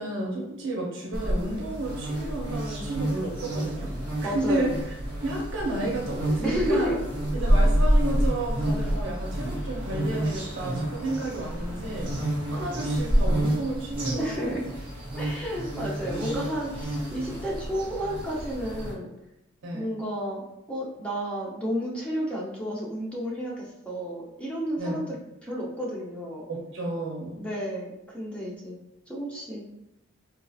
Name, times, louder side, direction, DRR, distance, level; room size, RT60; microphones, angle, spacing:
voice 1, 0.0-3.9 4.2-4.7 5.2-6.9 7.3-12.1 12.5-14.5 19.6-19.9 24.8-25.1 26.5-27.5, right 1 dB, 65° right, -1 dB, 0.7 m, -32 dB
sound 1, 1.1-18.9, right 1 dB, 30° right, 1.4 m, -28 dB
voice 2, 4.2-4.7 6.4-7.0 14.2-14.6 15.2-19.1 19.7-20.4 20.7-25.1 25.4-26.5 27.4-28.8 29.1-29.6, equal, 5° left, -5 dB, 0.6 m, -31 dB
4.0 x 2.7 x 2.3 m, 0.84 s
head